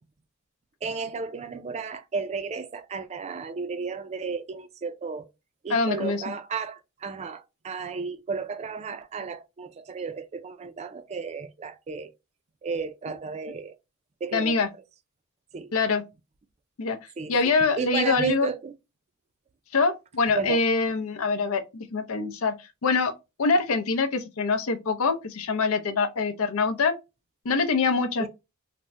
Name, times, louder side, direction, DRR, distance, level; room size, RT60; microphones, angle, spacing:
voice 1, 0.8-5.3 5.6-12.1 12.6-13.8 14.2-14.7 15.5-15.7 17.2-17.3 17.8-18.7 20.3-20.6 28.2-28.3, right 5 dB, 30° right, 0.3 m, -33 dB
voice 2, 5.7-6.2 14.3-14.7 15.7-16.0 16.8-17.0 17.3-18.5 19.7-22.5 22.8-23.1 23.4-26.9 27.4-28.3, left 4 dB, 90° left, 0.6 m, -24 dB
3.4 x 2.1 x 2.6 m
head